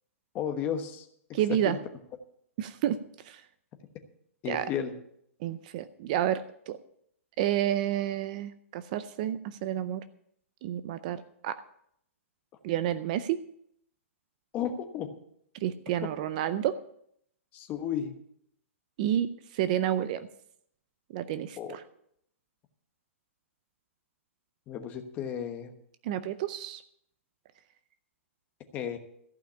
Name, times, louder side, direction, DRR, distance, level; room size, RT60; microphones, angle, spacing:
voice 1, 0.3-1.1 1.5-1.8 4.4-4.9 14.5-15.1 17.5-18.1 21.6-21.8 24.7-25.7 28.7-29.0, left 8 dB, 20° left, 7 dB, 1.1 m, -33 dB
voice 2, 1.3-1.8 2.6-3.0 3.2-3.4 4.5-4.7 5.4-6.8 7.4-10.0 10.6-11.6 12.6-13.4 15.6-16.8 19.0-20.3 21.1-21.8 26.0-26.8, right 11 dB, 35° right, 13 dB, 0.5 m, -30 dB
14.5 x 5.7 x 8.6 m, 0.71 s
hypercardioid pair, 165°, 8 cm